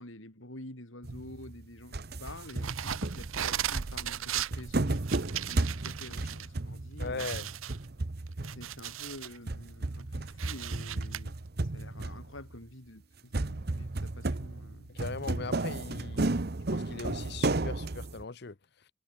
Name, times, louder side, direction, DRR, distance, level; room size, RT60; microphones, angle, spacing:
voice 1, 0.0-5.0 5.5-7.5 8.4-14.9, left 1 dB, 75° left, 5.9 m, -48 dB
sound 1, 1.0-1.7 1.9-8.9 9.3-12.6 13.3-18.2, right 2 dB, 50° right, 0.9 m, -34 dB
sound 2, 2.5-6.5 6.8-6.9 7.2-9.4 9.8-11.2, right 10 dB, 90° right, 0.8 m, -37 dB
voice 2, 7.0-7.5 14.9-16.3 16.7-18.9, left 4 dB, 55° left, 0.8 m, -39 dB
head